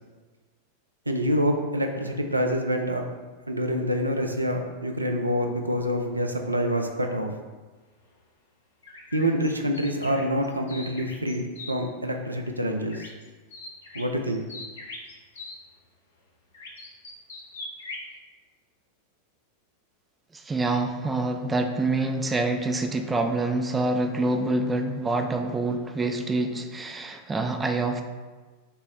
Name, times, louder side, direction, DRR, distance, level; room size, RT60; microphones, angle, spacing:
voice 1, 1.1-3.1 3.5-7.3 9.1-13.1 13.9-14.4, equal, 85° right, 4 dB, 0.4 m, -26 dB
sound 1, 8.8-11.7 12.9-13.2 13.5-15.6 16.5-18.1, left 2 dB, 60° left, 0.6 m, -41 dB
voice 2, 20.3-28.0, right 2 dB, 15° right, 5 dB, 0.4 m, -26 dB
5.4 x 2.1 x 4.2 m, 1.3 s
figure-of-eight pair, 90°, 0 cm